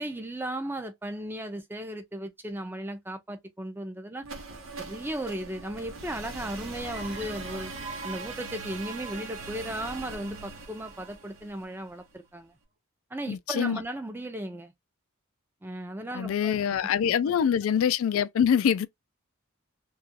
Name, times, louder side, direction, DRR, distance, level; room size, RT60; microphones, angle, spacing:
voice 1, 0.0-4.3 4.8-7.7 8.0-12.5 13.1-14.7 15.6-16.5, right 1 dB, 10° right, 0.4 m, -36 dB
sound 1, 4.2-12.1, right 3 dB, 75° right, 0.9 m, -41 dB
sound 2, 6.8-12.3, right 4 dB, 35° right, 0.9 m, -45 dB
voice 2, 13.3-13.8 16.1-18.9, left 8 dB, 85° left, 0.3 m, -24 dB
2.9 x 2.3 x 2.7 m
head